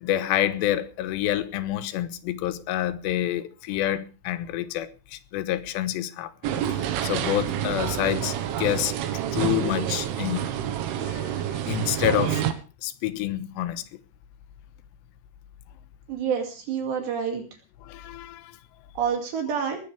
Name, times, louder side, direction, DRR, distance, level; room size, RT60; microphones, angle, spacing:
voice 1, 0.0-6.3 7.0-8.9 9.3-10.5 11.0-12.4 12.8-13.8 17.9-18.5, left 13 dB, 75° left, 3.1 m, -28 dB
sound 1, 6.4-12.5, right 10 dB, 90° right, 3.9 m, -28 dB
voice 2, 16.1-17.4 19.0-19.8, right 7 dB, 65° right, 4.7 m, -28 dB
20.5 x 15.0 x 3.5 m
omnidirectional pair, 5.4 m